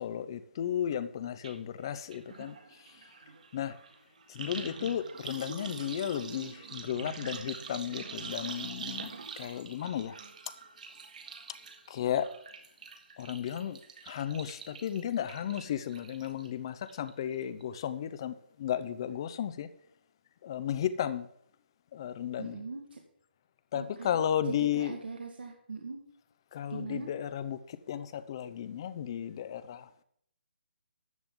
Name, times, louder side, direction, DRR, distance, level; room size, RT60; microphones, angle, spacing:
voice 1, 0.0-2.6 3.5-3.8 4.3-9.1 9.4-10.2 11.9-12.3 13.2-13.8 14.1-19.7 20.4-21.3 21.9-22.6 23.7-25.0 26.5-30.0, left 9 dB, 25° left, 0.6 m, -34 dB
sound 1, 1.4-1.5 1.8-16.5 16.9-17.3 17.6-17.7, right 5 dB, 45° right, 1.7 m, -45 dB
voice 2, 22.4-23.0 23.7-24.1 24.5-26.0 26.7-27.1, right 4 dB, 65° right, 1.8 m, -41 dB
13.5 x 9.3 x 3.7 m
hypercardioid pair, 170°, 6 cm